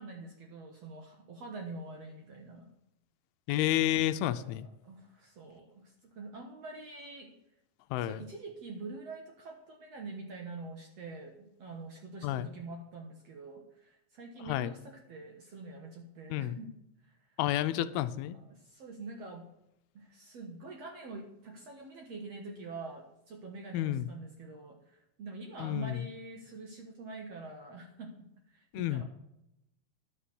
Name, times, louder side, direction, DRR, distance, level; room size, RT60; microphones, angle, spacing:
voice 1, 0.0-2.7 4.2-4.5 4.8-7.3 8.0-16.7 17.0-17.2 18.3-19.5 19.9-29.0, right 3 dB, 60° right, 1 dB, 1.7 m, -45 dB
voice 2, 3.5-4.7 7.9-8.2 12.2-12.5 14.5-14.7 16.3-16.6 17.4-18.4 23.7-24.1 25.6-26.0 28.7-29.0, left 13 dB, 85° left, 12 dB, 2.5 m, -30 dB
11.5 x 6.6 x 7.0 m, 0.85 s
omnidirectional pair, 4.4 m